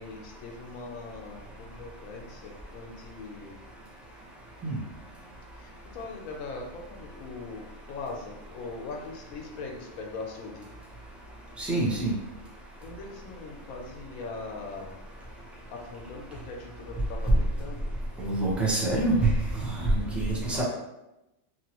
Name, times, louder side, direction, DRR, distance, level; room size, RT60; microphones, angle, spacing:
voice 1, 0.0-3.6 5.5-10.7 12.8-14.9 15.7-17.9 20.0-20.4, left 3 dB, 85° left, 1 dB, 1.1 m, -41 dB
voice 2, 11.6-12.1 18.2-19.3 19.6-20.6, right 2 dB, ahead, -6 dB, 0.4 m, -26 dB
3.0 x 2.6 x 2.9 m, 0.94 s
omnidirectional pair, 1.4 m